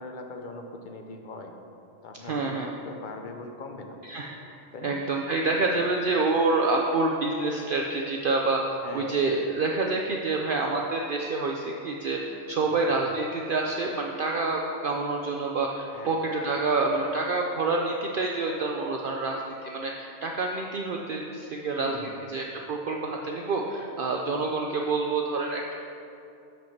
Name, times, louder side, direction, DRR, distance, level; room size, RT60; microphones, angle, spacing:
voice 1, 0.0-1.5 2.0-4.0 4.7-5.0 8.8-9.4 12.7-13.0 15.9-16.2 21.8-22.3, left 3 dB, 45° left, 4 dB, 0.8 m, -41 dB
voice 2, 2.3-2.7 4.0-4.5 4.8-25.7, right 3 dB, 55° right, 1 dB, 0.7 m, -27 dB
8.9 x 5.3 x 5.9 m, 2.6 s
omnidirectional pair, 1.2 m